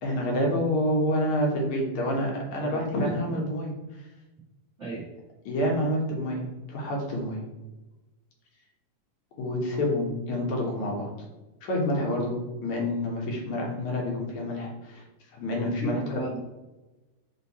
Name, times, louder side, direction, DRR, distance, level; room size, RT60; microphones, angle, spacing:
voice 1, 0.0-4.0 5.5-7.4 9.4-11.3 11.6-15.0 15.3-16.0, left 1 dB, 65° left, -1 dB, 2.6 m, -28 dB
voice 2, 2.6-3.4 4.8-5.1 15.8-16.4, right 3 dB, 35° right, -6 dB, 1.2 m, -36 dB
5.5 x 5.4 x 4.1 m, 1.1 s
omnidirectional pair, 3.7 m